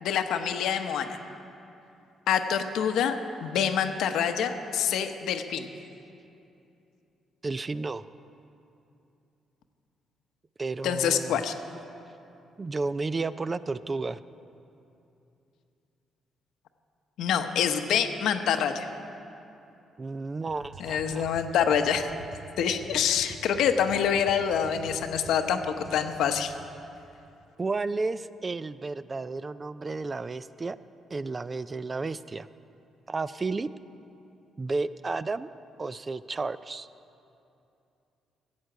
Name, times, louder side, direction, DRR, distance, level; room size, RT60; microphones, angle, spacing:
voice 1, 0.0-1.2 2.3-3.1 3.4-5.7 10.8-11.5 17.2-18.9 20.8-22.1 22.6-26.5, left 8 dB, 80° left, 7 dB, 0.8 m, -26 dB
voice 2, 7.4-8.0 10.6-11.4 12.6-14.2 20.0-21.3 25.1-25.2 27.6-30.8 31.1-32.5 33.1-33.7 34.6-35.5 35.8-36.9, right 3 dB, 30° right, 15 dB, 0.3 m, -32 dB
sound 1, 20.5-26.6, right 4 dB, 55° right, 1.2 m, -47 dB
12.5 x 8.1 x 7.7 m, 2.8 s
cardioid pair, 90°, 0 cm